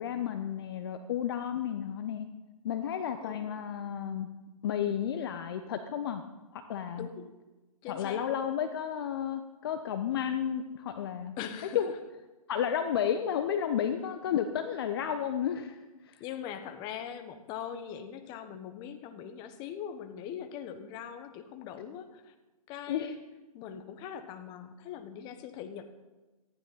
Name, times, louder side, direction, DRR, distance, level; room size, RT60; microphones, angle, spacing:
voice 1, 0.0-2.3 2.6-4.3 4.6-6.2 6.5-7.1 7.9-11.4 11.7-11.9 12.5-16.2 22.9-23.1, left 9 dB, 40° left, 8 dB, 1.0 m, -32 dB
voice 2, 7.8-8.4 11.4-11.8 16.2-22.3 22.7-23.2 23.5-25.9, left 9 dB, 25° left, 9 dB, 1.3 m, -41 dB
18.5 x 14.5 x 4.1 m, 1.1 s
figure-of-eight pair, 130°, 19 cm